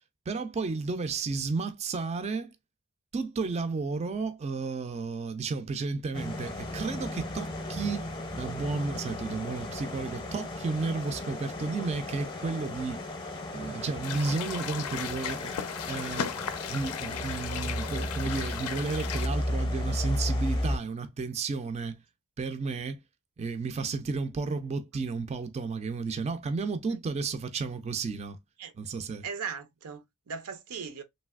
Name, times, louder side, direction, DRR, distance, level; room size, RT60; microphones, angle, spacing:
voice 1, 0.3-2.5 3.1-8.1 8.3-13.0 13.5-22.0 22.4-23.0 23.4-28.4 28.8-29.2, right 4 dB, 30° right, 0.3 m, -33 dB
sound 1, 6.1-20.8, left 1 dB, 20° left, 0.6 m, -34 dB
sound 2, 14.0-19.3, left 9 dB, 75° left, 0.4 m, -37 dB
voice 2, 29.2-31.0, right 6 dB, 85° right, 0.6 m, -38 dB
3.2 x 2.7 x 2.3 m
head